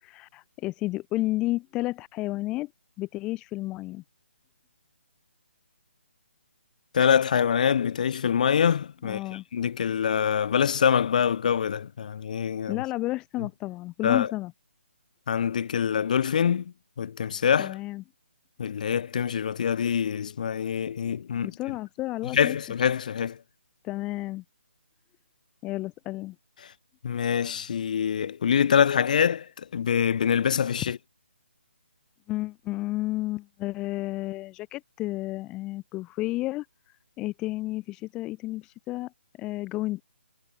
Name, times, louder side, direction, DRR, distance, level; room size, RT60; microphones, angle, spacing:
voice 1, 0.0-2.7 3.0-4.0 9.0-9.4 12.7-14.5 17.6-18.0 21.4-22.6 23.8-24.4 25.6-26.4 32.3-36.7 37.2-39.1 39.4-40.0, left 18 dB, 10° left, 0.9 m, -31 dB
voice 2, 6.9-12.8 13.4-13.5 14.0-14.3 15.3-17.7 18.6-21.5 22.3-23.4 27.0-31.0, left 8 dB, 40° left, 1.8 m, -25 dB
hypercardioid pair, 170°, 7 cm